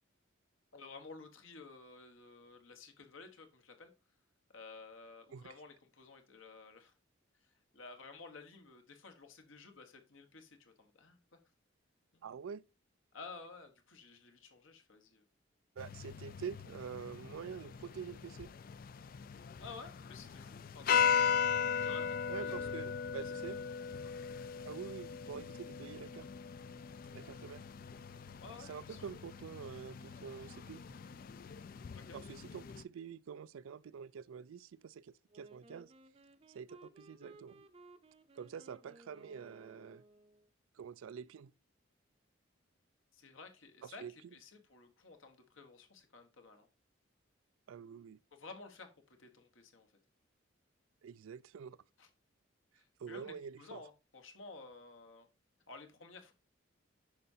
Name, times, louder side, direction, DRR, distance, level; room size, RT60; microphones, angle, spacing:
voice 1, 0.7-3.9 4.5-6.9 7.4-11.4 12.1-12.3 13.1-15.2 19.6-22.8 23.2-23.7 28.4-29.1 31.9-32.2 43.1-46.7 48.3-49.9 52.0-52.1 52.7-55.3 55.7-56.3, left 4 dB, 80° left, 1.2 m, -53 dB
voice 2, 12.2-12.6 15.8-18.5 22.3-23.6 24.6-26.3 27.1-27.6 28.6-30.8 32.1-35.9 36.5-37.7 38.4-40.0 40.8-41.5 43.8-44.1 47.7-48.2 51.0-51.8 53.0-53.8, right 7 dB, 90° right, 0.4 m, -46 dB
sound 1, 15.8-32.8, left 7 dB, 45° left, 0.3 m, -38 dB
Wind instrument woodwind instrument, 35.3-40.5, right 2 dB, 30° right, 0.5 m, -60 dB
9.5 x 5.5 x 2.7 m
head